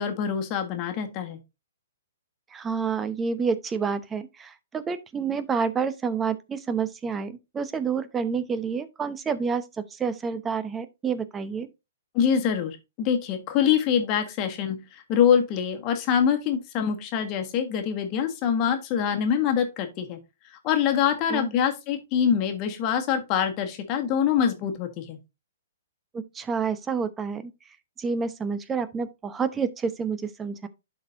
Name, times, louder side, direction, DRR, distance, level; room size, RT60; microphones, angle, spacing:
voice 1, 0.0-1.4 12.1-20.2 20.6-25.2, left 8 dB, 35° left, 1.5 m, -25 dB
voice 2, 2.5-11.7 21.3-21.5 26.1-27.5 28.0-30.7, right 5 dB, 15° right, 0.8 m, -29 dB
12.0 x 4.4 x 2.7 m
hypercardioid pair, 130°, 0 cm